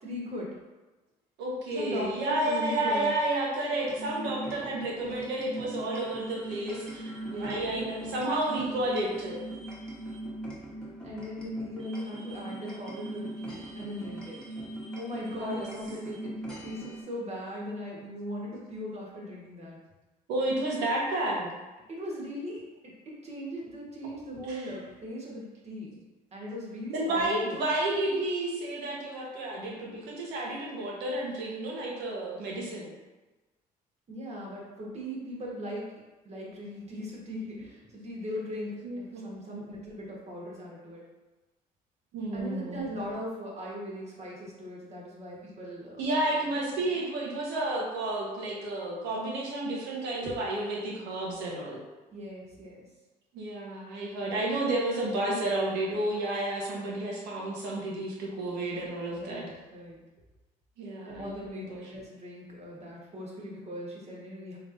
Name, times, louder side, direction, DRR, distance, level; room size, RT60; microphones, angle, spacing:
voice 1, 0.0-0.5 1.7-3.1 7.2-7.7 11.0-14.4 14.9-16.3 16.6-19.8 21.9-26.0 26.3-27.6 34.1-35.9 36.2-41.0 42.3-46.3 46.7-46.8 50.2-50.3 52.1-52.8 58.6-58.8 59.1-60.0 61.0-64.6, equal, 40° right, -4 dB, 1.4 m, -39 dB
voice 2, 1.4-9.4 15.4-15.7 20.3-21.5 24.5-24.6 26.9-32.9 38.8-39.7 42.1-42.9 46.0-51.8 53.3-59.4 60.8-61.9, right 1 dB, 85° right, -3 dB, 1.2 m, -31 dB
sound 1, 3.8-17.0, right 1 dB, 5° left, 1.2 m, -40 dB
4.3 x 3.5 x 2.6 m, 1.2 s
cardioid pair, 110°, 17 cm